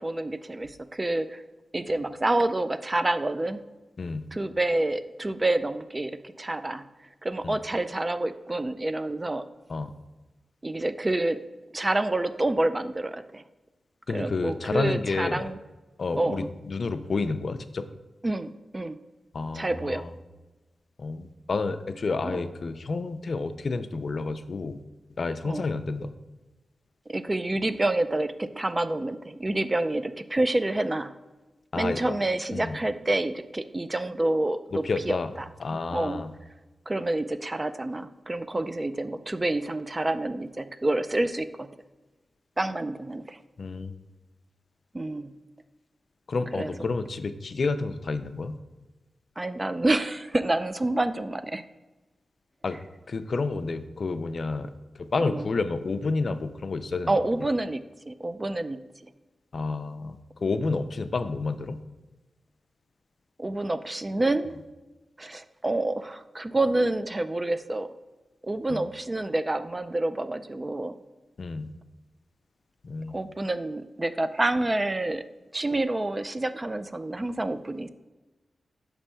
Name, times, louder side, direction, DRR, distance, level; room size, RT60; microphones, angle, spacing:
voice 1, 0.0-1.4 1.7-3.6 4.3-6.9 7.2-9.5 10.6-11.4 11.7-13.4 14.1-15.6 16.2-16.5 18.2-19.0 19.5-20.1 22.2-22.4 25.4-25.7 27.1-31.1 31.7-35.2 35.9-36.2 36.9-41.7 42.6-43.4 44.9-45.3 46.5-46.7 49.4-51.7 55.2-55.5 57.1-58.8 63.4-64.5 65.2-67.9 68.4-71.0 73.1-75.2 75.5-77.9, right 2 dB, 25° right, 12 dB, 0.3 m, -28 dB
voice 2, 4.0-4.3 7.4-7.6 9.7-9.9 14.1-15.4 16.0-17.9 19.3-20.1 21.0-24.8 25.2-26.1 31.7-32.1 32.5-32.8 34.7-35.3 35.6-36.3 43.6-43.9 46.3-48.6 52.6-52.8 53.1-54.7 55.0-57.1 59.5-61.8 68.7-68.8 71.4-71.7 72.8-73.2, left 3 dB, 55° left, 10 dB, 0.4 m, -30 dB
6.0 x 3.3 x 5.6 m, 1.2 s
cardioid pair, 75°, 0 cm